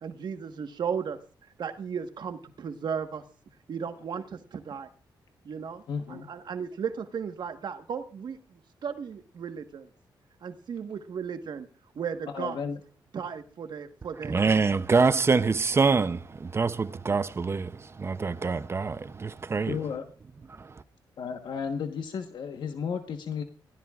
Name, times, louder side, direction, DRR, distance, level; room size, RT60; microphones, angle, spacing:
voice 1, 0.0-1.2 1.6-3.2 3.7-4.9 5.4-9.9 10.4-11.7 11.9-12.6 13.1-14.3, right 7 dB, 65° right, 1.4 m, -35 dB
voice 2, 5.9-6.3 12.3-12.8 19.7-20.0 21.2-23.4, left 6 dB, 70° left, 1.3 m, -33 dB
voice 3, 14.3-19.8 20.5-20.7, right 4 dB, 30° right, 0.7 m, -25 dB
26.0 x 16.5 x 2.5 m
cardioid pair, 100°, 8 cm